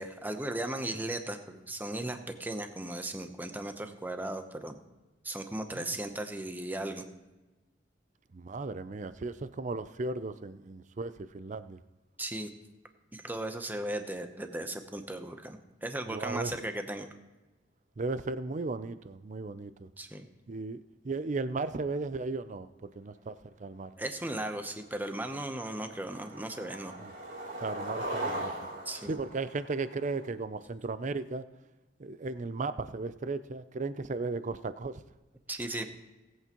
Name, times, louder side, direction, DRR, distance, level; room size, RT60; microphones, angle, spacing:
voice 1, 0.0-4.8 5.2-7.0 12.2-12.5 13.1-17.1 20.0-20.3 24.0-26.9 28.9-29.2 35.5-35.9, right 1 dB, 10° right, 6 dB, 0.8 m, -36 dB
voice 2, 8.3-11.8 16.1-16.5 18.0-19.9 20.5-22.7 23.0-23.9 27.0-27.1 27.6-28.5 29.1-31.4 32.0-34.9, right 3 dB, 40° right, 13 dB, 0.5 m, -35 dB
Skateboard, 25.0-25.3 25.6-30.3, right 1 dB, 85° right, 3.6 m, -39 dB
19.0 x 8.4 x 3.0 m, 1.1 s
head